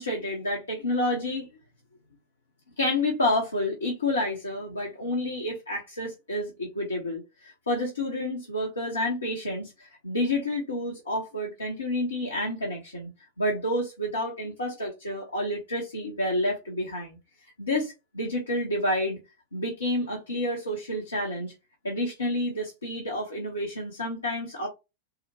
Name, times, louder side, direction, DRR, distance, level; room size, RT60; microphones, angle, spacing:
voice 1, 0.0-1.5 2.8-13.1 13.4-17.2 17.6-19.2 19.5-21.5 21.8-24.7, left 1 dB, 75° left, 0.9 m, -29 dB
3.9 x 2.1 x 2.9 m
figure-of-eight pair, 90°, 0 cm